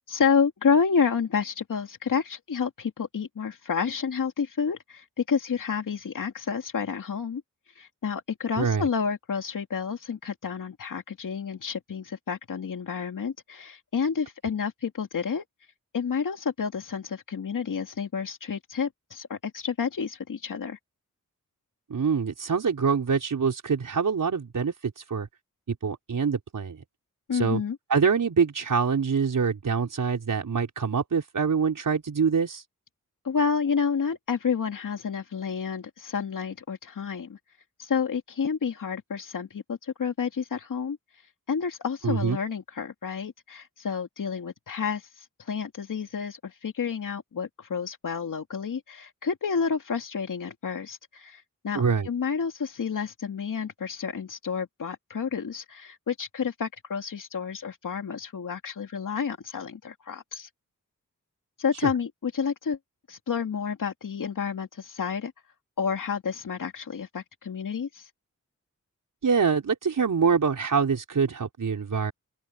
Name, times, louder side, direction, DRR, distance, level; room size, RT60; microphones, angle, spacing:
voice 1, 0.1-7.4 7.7-15.4 15.9-20.8 27.3-27.8 33.2-37.4 37.8-60.5 61.6-62.8 63.1-65.3 65.8-68.1, left 6 dB, 70° left, 2.4 m, -30 dB
voice 2, 8.6-8.9 21.9-25.3 25.7-26.8 27.3-27.6 27.9-32.6 42.0-42.4 51.7-52.1 69.2-72.1, right 6 dB, 70° right, 5.0 m, -25 dB
open air
cardioid pair, 65°, 33 cm